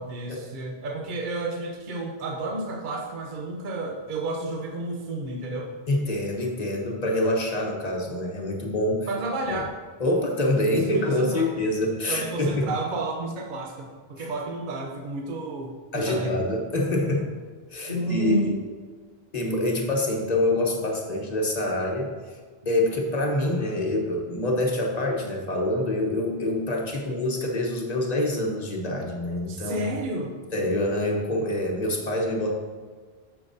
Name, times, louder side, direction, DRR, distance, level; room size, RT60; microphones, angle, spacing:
voice 1, 0.0-5.7 9.1-9.7 10.6-11.5 12.1-16.4 17.9-18.6 29.5-30.4, right 2 dB, 50° right, 1 dB, 0.9 m, -31 dB
voice 2, 5.9-9.1 9.5-9.6 10.0-12.7 15.9-17.3 17.7-18.5 19.3-22.1 22.6-29.9 30.5-32.5, left 1 dB, 40° left, 0 dB, 1.2 m, -26 dB
8.7 x 6.9 x 2.7 m, 1.5 s
omnidirectional pair, 1.1 m